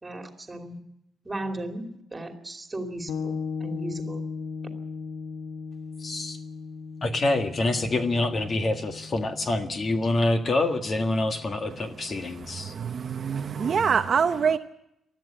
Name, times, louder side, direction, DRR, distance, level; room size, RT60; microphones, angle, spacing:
voice 1, 0.0-0.8 1.2-4.2, right 1 dB, 15° right, 5 dB, 2.7 m, -36 dB
sound 1, 3.1-12.8, left 5 dB, 90° left, 1.2 m, -38 dB
voice 2, 6.0-6.4 7.0-12.7, left 2 dB, 30° left, 7 dB, 1.7 m, -26 dB
voice 3, 12.4-14.6, right 6 dB, 40° right, 7 dB, 0.8 m, -25 dB
20.0 x 13.5 x 9.9 m, 0.80 s
cardioid pair, 160°, 0 cm